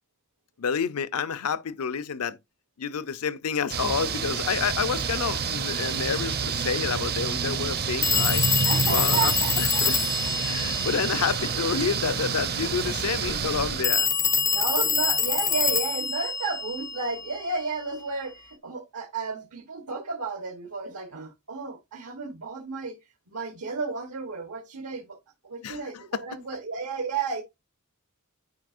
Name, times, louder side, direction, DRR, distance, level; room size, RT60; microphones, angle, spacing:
voice 1, 0.6-2.4 2.8-8.4 8.9-10.0 10.4-14.1 25.6-26.2, left 6 dB, 75° left, 0.6 m, -29 dB
sound 1, 3.7-13.8, right 6 dB, 45° right, 0.6 m, -28 dB
Telephone, 5.8-5.9 8.0-11.7 13.8-17.5, left 6 dB, 15° left, 0.4 m, -26 dB
voice 2, 8.6-9.9 10.4-10.5 14.4-23.0 23.3-25.2 25.4-27.4, right 4 dB, 85° right, 1.2 m, -32 dB
9.6 x 4.9 x 2.5 m
head